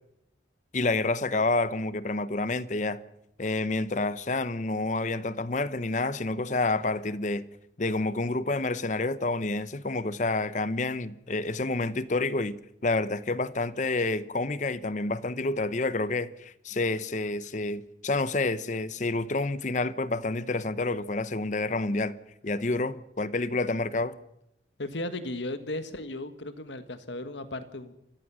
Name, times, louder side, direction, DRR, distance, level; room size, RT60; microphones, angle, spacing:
voice 1, 0.7-3.0 3.4-7.4 7.8-12.6 12.8-22.2 22.4-24.1, left 2 dB, 40° left, 0.8 m, -29 dB
voice 2, 24.8-27.9, left 2 dB, 80° left, 1.7 m, -36 dB
28.5 x 15.0 x 6.2 m
head